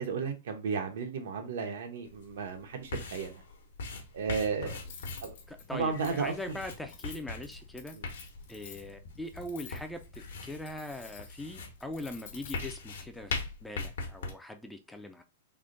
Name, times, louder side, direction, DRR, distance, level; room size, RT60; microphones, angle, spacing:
voice 1, 0.0-3.4 4.1-4.8 5.2-5.3 5.7-6.3 7.9-8.0, right 5 dB, 75° right, 0.9 m, -33 dB
sound 1, 2.1-14.3, left 3 dB, 85° left, 1.0 m, -41 dB
Cutlery silverware, 4.8-13.5, left 5 dB, 60° left, 1.1 m, -51 dB
voice 2, 5.5-8.0 8.5-15.2, left 1 dB, 5° left, 0.3 m, -41 dB
3.5 x 2.2 x 3.8 m
hypercardioid pair, 150°, 0 cm